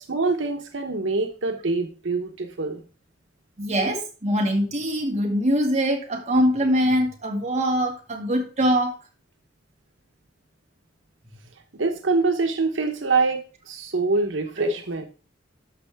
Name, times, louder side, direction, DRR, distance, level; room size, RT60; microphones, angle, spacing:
voice 1, 0.1-2.8 11.7-13.4 13.7-15.1, right 3 dB, 90° right, 5 dB, 1.0 m, -25 dB
voice 2, 3.6-8.9 14.6-14.7, equal, 40° right, 1 dB, 2.0 m, -23 dB
12.5 x 5.5 x 3.5 m, 0.35 s
head